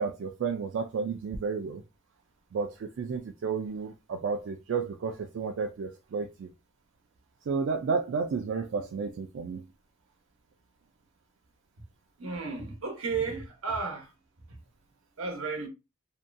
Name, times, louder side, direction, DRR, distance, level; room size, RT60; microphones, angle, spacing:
voice 1, 0.0-1.8 2.5-6.5 7.5-9.6, right 5 dB, 55° right, 0.3 m, -32 dB
voice 2, 12.2-14.1 15.2-15.7, right 4 dB, 80° right, 0.8 m, -33 dB
2.7 x 2.2 x 2.5 m
head